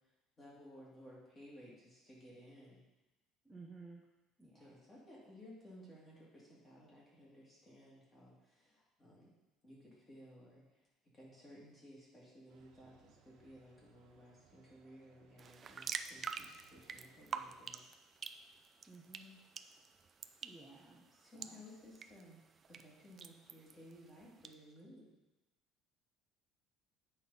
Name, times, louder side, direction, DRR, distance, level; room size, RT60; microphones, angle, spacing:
voice 1, 0.4-2.8 4.5-9.3 9.6-10.6 11.1-17.8 21.1-22.4 22.7-25.1, equal, 20° left, -6 dB, 2.5 m, -57 dB
voice 2, 3.4-4.0 4.4-4.8 18.9-19.4 20.4-21.0 21.3-21.6, right 3 dB, 5° right, -3 dB, 0.7 m, -55 dB
sound 1, 12.5-17.7, right 5 dB, 65° right, 1.1 m, -69 dB
sound 2, 15.4-24.5, right 6 dB, 25° right, 0.3 m, -48 dB
8.9 x 5.5 x 4.1 m, 1.0 s
cardioid pair, 170°, 0 cm